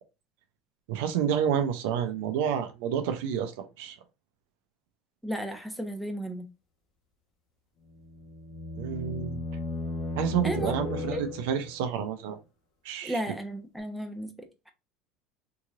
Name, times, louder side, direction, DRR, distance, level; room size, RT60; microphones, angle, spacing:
voice 1, 0.9-4.0 8.8-9.4 10.2-12.4 12.8-13.2, right 8 dB, 80° right, 0.6 m, -29 dB
voice 2, 5.2-6.5 10.4-11.2 13.0-14.7, equal, ahead, 0.9 m, -34 dB
sound 1, 7.9-11.8, left 2 dB, 50° left, 1.1 m, -35 dB
3.7 x 3.0 x 2.5 m
supercardioid pair, 95°, 0 cm